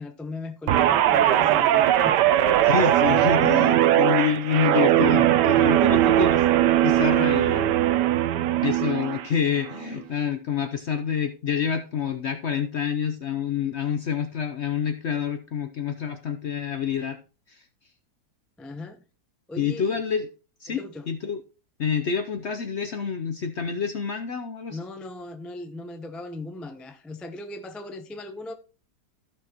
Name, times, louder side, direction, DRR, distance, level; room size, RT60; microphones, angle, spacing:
voice 1, 0.0-2.2 18.6-19.0 19.5-20.0 20.7-21.0 24.7-28.5, left 2 dB, ahead, 0.3 m, -38 dB
Guitar, 0.7-9.3 9.7-10.0, right 12 dB, 80° right, 1.3 m, -20 dB
voice 2, 2.6-6.4 6.8-7.8 8.6-17.2 17.5-17.6 19.6-20.3 20.6-21.4 21.8-24.8, left 7 dB, 60° left, 0.7 m, -27 dB
14.5 x 6.2 x 2.9 m
omnidirectional pair, 1.8 m